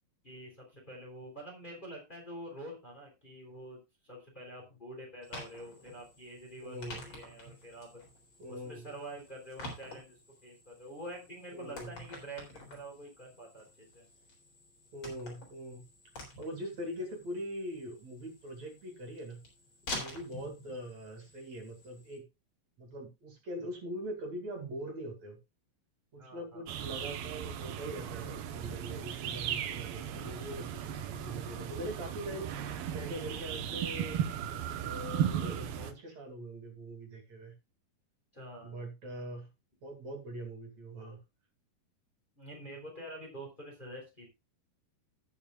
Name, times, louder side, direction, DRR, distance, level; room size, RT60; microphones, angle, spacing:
voice 1, 0.2-7.9 8.5-10.1 10.4-14.0 26.2-26.8 38.3-38.8 42.4-44.3, right 1 dB, 15° left, 0 dB, 3.1 m, -47 dB
sound 1, 5.2-22.2, left 2 dB, 40° left, 4.6 m, -48 dB
voice 2, 6.6-7.0 8.4-8.9 11.5-12.0 14.9-15.8 16.4-19.4 20.0-22.3 22.8-25.4 26.1-32.5 32.9-34.2 34.8-37.5 38.6-39.5 39.8-41.2, equal, 50° right, 3 dB, 3.5 m, -42 dB
sound 2, 26.7-35.9, right 9 dB, 85° right, 2.9 m, -36 dB
18.5 x 7.1 x 2.3 m, 0.25 s
omnidirectional pair, 4.1 m